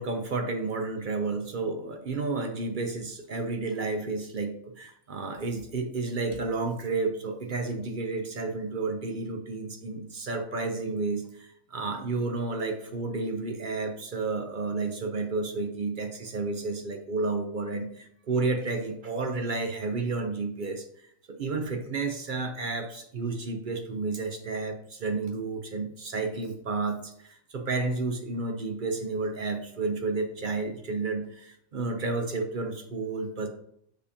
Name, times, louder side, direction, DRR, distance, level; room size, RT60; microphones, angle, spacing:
voice 1, 0.0-33.5, right 3 dB, 55° right, 5 dB, 0.6 m, -31 dB
6.4 x 5.4 x 2.7 m, 0.69 s
omnidirectional pair, 1.5 m